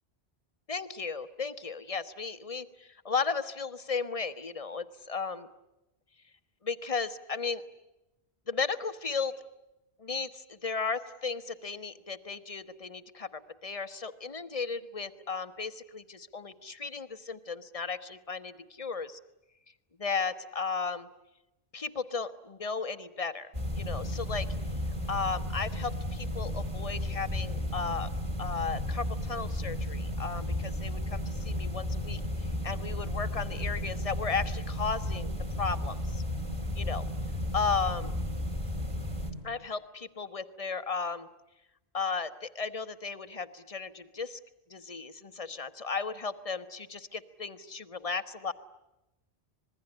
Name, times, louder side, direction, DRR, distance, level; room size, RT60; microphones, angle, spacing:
voice 1, 0.7-5.5 6.6-7.6 8.5-9.4 10.0-19.2 20.0-21.1 21.7-24.5 25.1-28.1 28.4-35.3 35.6-36.2 36.8-37.0 37.5-38.1 39.4-41.3 41.9-44.4 44.7-48.5, left 5 dB, 35° left, 11 dB, 1.1 m, -35 dB
sound 1, 23.5-39.3, left 1 dB, 30° right, 3.3 m, -33 dB
26.0 x 20.5 x 9.9 m, 0.95 s
omnidirectional pair, 1.1 m